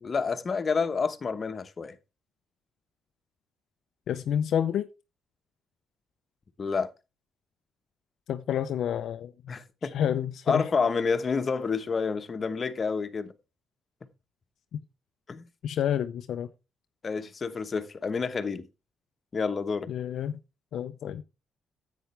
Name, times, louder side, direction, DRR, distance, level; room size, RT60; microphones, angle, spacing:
voice 1, 0.0-2.0 6.6-6.9 9.5-10.0 10.5-13.3 15.3-15.4 17.0-18.7 19.3-19.9, left 5 dB, 40° left, 1.1 m, -29 dB
voice 2, 4.1-4.9 8.3-9.3 9.9-10.7 15.6-16.5 19.9-20.4 20.7-21.2, left 9 dB, 70° left, 0.5 m, -29 dB
10.0 x 8.5 x 3.3 m
cardioid pair, 90°, 0 cm